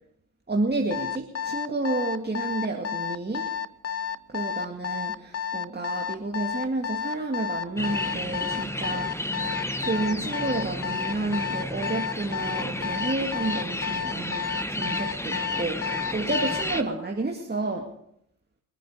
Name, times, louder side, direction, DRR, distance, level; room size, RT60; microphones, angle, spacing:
voice 1, 0.5-3.5 4.3-9.3 9.8-14.4 14.7-17.9, right 2 dB, 25° right, 0 dB, 2.2 m, -30 dB
Alarm, 0.9-16.7, left 8 dB, 35° left, 0.8 m, -31 dB
sound 1, 7.8-16.8, left 1 dB, 5° left, 1.3 m, -32 dB
23.0 x 9.2 x 5.0 m, 0.74 s
hypercardioid pair, 40°, 40 cm